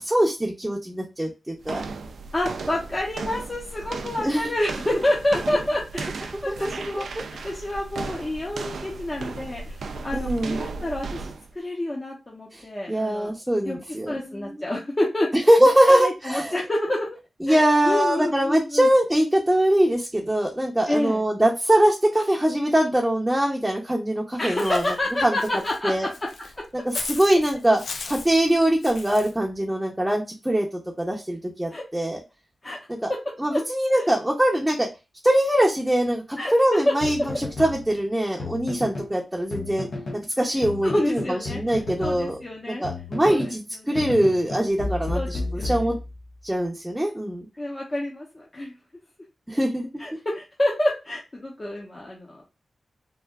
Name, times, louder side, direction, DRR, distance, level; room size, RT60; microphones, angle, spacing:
voice 1, 0.0-1.8 4.2-4.5 6.6-6.7 6.9-7.2 10.1-10.6 12.5-12.6 12.9-14.6 15.5-16.6 17.4-24.8 25.2-25.4 25.8-26.1 26.7-27.8 28.1-32.2 33.0-33.1 33.4-34.9 35.2-39.9 40.1-42.4 42.8-45.9 46.4-47.5 49.5-49.9, right 1 dB, 10° right, -1 dB, 0.6 m, -22 dB
sound 1, 1.6-11.5, right 4 dB, 90° right, 0.3 m, -35 dB
voice 2, 2.3-13.3 13.6-13.8 14.1-15.4 15.9-17.1 17.5-18.9 20.9-21.2 24.4-26.1 26.5-26.6 31.7-31.9 32.6-32.8 33.1-33.6 33.9-34.1 36.4-37.3 40.8-41.6 42.0-42.8 43.3-44.1 45.1-45.9 47.6-48.7 50.0-52.4, left 1 dB, 30° left, -2 dB, 0.8 m, -28 dB
Walk footsteps / Bird, 24.6-29.3, left 4 dB, 85° left, 0.4 m, -38 dB
sound 2, 37.0-39.2 39.5-40.3 40.6-43.6 44.0-46.4, left 2 dB, 70° left, 0.9 m, -33 dB
3.2 x 2.4 x 2.3 m, 0.27 s
cardioid pair, 65°, 0 cm